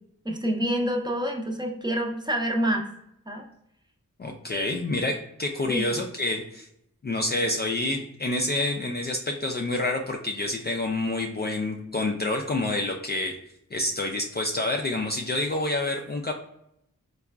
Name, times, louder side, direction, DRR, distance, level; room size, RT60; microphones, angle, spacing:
voice 1, 0.2-2.9 3.3-3.4 4.5-4.7 5.6-5.9, equal, 15° right, 1 dB, 0.6 m, -27 dB
voice 2, 4.2-6.7 7.0-13.4 13.7-16.3, left 2 dB, 30° left, 1 dB, 0.4 m, -28 dB
3.6 x 2.3 x 2.3 m, 0.78 s
cardioid pair, 45°, 33 cm